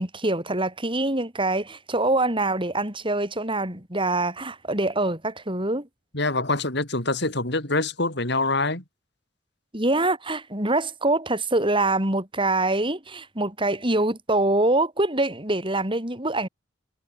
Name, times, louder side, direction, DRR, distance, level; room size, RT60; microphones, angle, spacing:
voice 1, 0.0-5.9 9.7-16.5, right 2 dB, 25° right, 7.6 m, -24 dB
voice 2, 6.1-8.8, left 2 dB, 60° left, 5.6 m, -25 dB
head